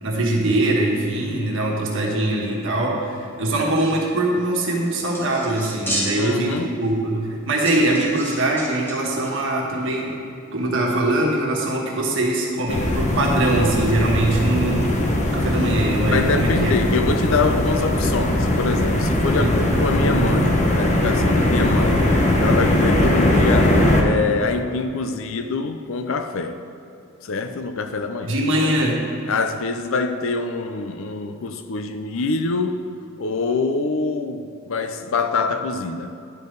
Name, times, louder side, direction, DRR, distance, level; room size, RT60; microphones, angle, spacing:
voice 1, 0.0-10.2 10.5-16.7 19.4-19.5 28.3-29.1, right 1 dB, 65° right, -1 dB, 1.4 m, -22 dB
sound 1, 4.8-6.5 6.8-6.9 7.6-8.9 9.2-9.3, equal, 10° left, 1.7 m, -30 dB
voice 2, 6.2-6.7 16.1-26.6 27.2-28.3 29.3-32.8 33.2-36.1, left 4 dB, 70° left, 8 dB, 0.5 m, -25 dB
sound 2, 12.7-24.0, left 1 dB, 35° left, 0.9 m, -20 dB
10.5 x 5.3 x 3.9 m, 2.7 s
head